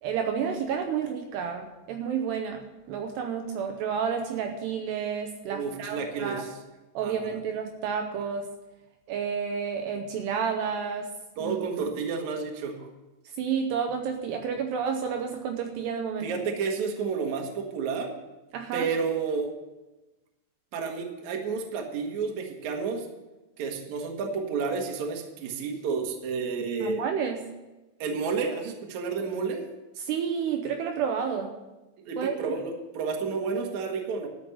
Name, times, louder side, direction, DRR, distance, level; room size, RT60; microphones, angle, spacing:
voice 1, 0.0-6.5 6.9-8.5 9.1-11.1 11.4-11.5 13.4-16.3 18.5-18.9 26.8-27.4 30.0-31.5 32.2-32.6, right 7 dB, 80° right, 5 dB, 2.6 m, -30 dB
voice 2, 5.5-6.6 7.0-7.4 11.4-12.9 16.2-18.1 18.7-19.5 20.7-23.1 23.6-27.0 28.0-29.7 32.1-34.3, right 5 dB, 55° right, 2 dB, 2.1 m, -31 dB
12.5 x 6.3 x 9.6 m, 1.1 s
omnidirectional pair, 5.6 m